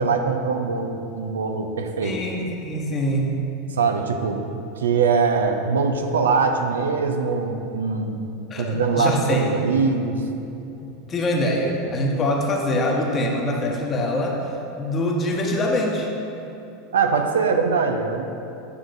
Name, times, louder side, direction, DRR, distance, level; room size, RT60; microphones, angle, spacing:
voice 1, 0.0-2.2 3.7-4.5 4.8-8.2 8.5-10.2 16.9-18.3, right 5 dB, 80° right, 5 dB, 0.5 m, -22 dB
voice 2, 2.0-3.4 8.5-9.5 11.1-14.4 14.8-16.1, left 1 dB, 30° left, 0 dB, 1.1 m, -24 dB
9.4 x 6.2 x 2.6 m, 2.8 s
hypercardioid pair, 85°, 0 cm